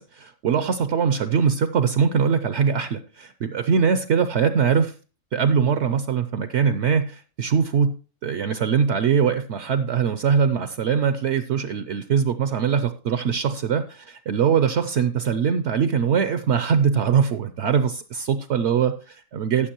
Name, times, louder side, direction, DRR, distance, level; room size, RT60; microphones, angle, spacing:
voice 1, 0.0-4.9 5.3-8.0 8.2-19.7, right 7 dB, 65° right, 10 dB, 0.8 m, -22 dB
14.5 x 6.7 x 2.9 m, 0.35 s
omnidirectional pair, 1.4 m